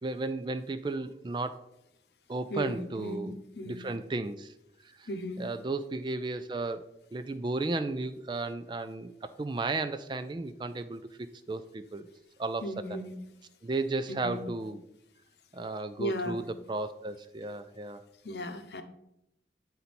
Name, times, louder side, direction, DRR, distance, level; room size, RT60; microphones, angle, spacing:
voice 1, 0.0-1.6 2.3-3.4 3.7-4.5 4.8-5.1 5.4-6.8 7.1-11.0 11.5-12.1 12.4-13.0 13.6-14.8 15.5-18.0, right 3 dB, 25° right, 11 dB, 0.3 m, -34 dB
voice 2, 2.5-3.8 5.1-5.4 12.6-13.2 14.1-14.5 16.0-16.3 18.2-18.8, equal, 70° left, 8 dB, 0.8 m, -36 dB
9.2 x 4.1 x 4.3 m, 0.82 s
head